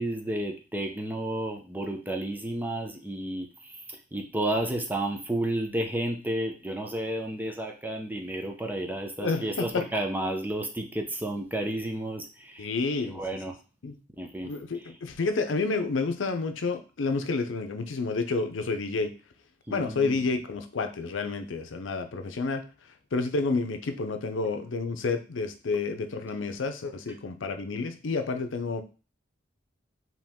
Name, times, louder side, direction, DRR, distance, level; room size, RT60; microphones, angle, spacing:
voice 1, 0.0-3.5 4.1-12.7 13.0-13.5 14.2-14.5 19.7-20.2, right 1 dB, 10° right, 3 dB, 0.7 m, -31 dB
voice 2, 9.2-9.9 12.6-13.2 13.8-14.0 14.4-19.1 19.7-22.6 23.1-28.8, left 3 dB, 90° left, 8 dB, 0.6 m, -29 dB
5.0 x 3.0 x 3.6 m, 0.34 s
head